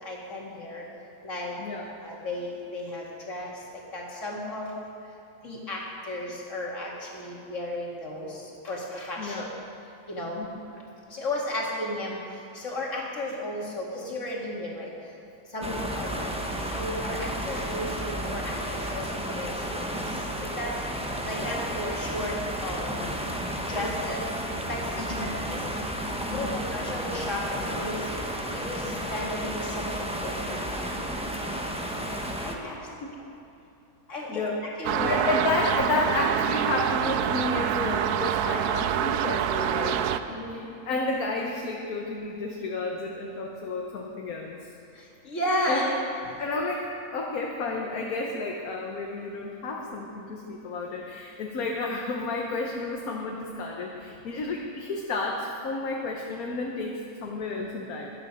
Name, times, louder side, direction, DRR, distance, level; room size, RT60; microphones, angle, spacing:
voice 1, 0.0-0.8 1.2-1.5 1.8-3.5 3.9-4.7 5.4-8.4 8.6-9.5 10.1-10.4 11.1-12.1 12.5-14.9 15.5-16.2 16.7-19.9 20.4-20.7 21.2-23.3 23.7-24.2 24.7-25.6 26.3-28.0 28.5-30.6 32.4-32.8 34.1-34.4 34.8-35.2 40.3-40.7 45.2-46.1, left 1 dB, 55° left, -3 dB, 2.6 m, -34 dB
voice 2, 9.2-9.5 10.4-10.5 15.6-15.9 25.1-25.3 26.3-26.6 34.3-40.1 40.5-44.7 45.6-45.8 46.4-58.1, left 3 dB, 70° left, 0 dB, 1.5 m, -31 dB
sound 1, 15.6-32.5, equal, 5° right, 0.8 m, -32 dB
sound 2, 34.8-40.2, right 9 dB, 80° right, 1.1 m, -26 dB
13.0 x 11.5 x 5.4 m, 2.8 s
omnidirectional pair, 1.6 m